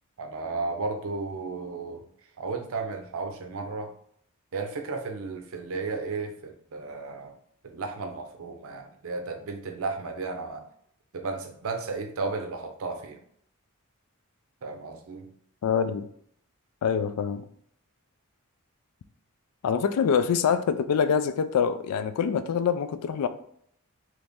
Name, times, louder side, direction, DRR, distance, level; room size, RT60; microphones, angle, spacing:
voice 1, 0.2-2.1 2.4-3.9 4.5-7.3 7.6-10.6 11.1-13.2 14.6-15.3, right 3 dB, 65° right, 4 dB, 0.6 m, -34 dB
voice 2, 15.6-16.1 16.8-17.5 19.6-23.3, left 7 dB, 90° left, 12 dB, 0.4 m, -25 dB
3.0 x 2.7 x 3.5 m, 0.66 s
head